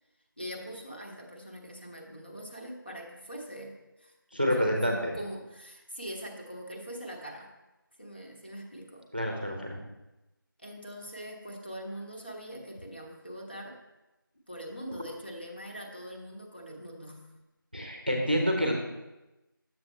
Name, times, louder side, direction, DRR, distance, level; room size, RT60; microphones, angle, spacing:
voice 1, 0.4-4.2 4.6-7.5 8.0-9.1 10.6-13.8 14.5-17.3, equal, 25° left, -1 dB, 1.1 m, -42 dB
voice 2, 4.3-5.1 9.1-9.8 17.7-18.7, equal, 25° right, 1 dB, 0.9 m, -28 dB
10.5 x 7.5 x 3.3 m, 1.0 s
figure-of-eight pair, 180°, 12 cm